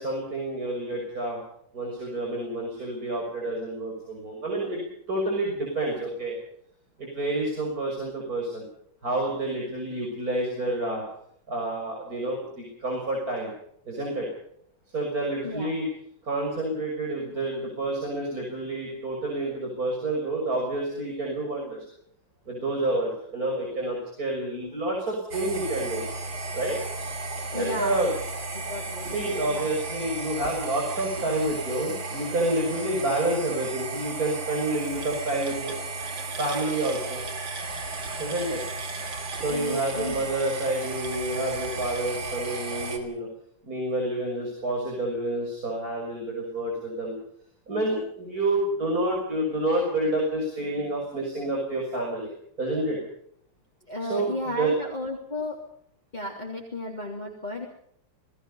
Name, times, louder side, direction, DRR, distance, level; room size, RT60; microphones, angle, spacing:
voice 1, 0.0-1.4 1.7-6.4 7.0-8.6 9.0-11.0 11.5-13.5 13.9-14.3 14.9-15.8 16.2-21.9 22.5-26.0 26.5-26.8 27.5-28.1 29.0-35.7 36.4-37.2 38.2-38.6 39.3-43.3 43.6-47.1 47.7-52.3 52.6-53.0 54.1-54.3 54.6-54.7, right 1 dB, 50° right, 0 dB, 6.7 m, -29 dB
voice 2, 15.4-15.7 27.5-28.0 28.5-29.2 29.5-29.7 39.4-40.2 53.8-55.7 56.1-57.7, left 2 dB, 20° left, 0 dB, 3.4 m, -34 dB
sound 1, 25.3-43.0, right 3 dB, 90° right, 3.8 m, -34 dB
28.5 x 19.5 x 5.6 m, 0.67 s
omnidirectional pair, 2.1 m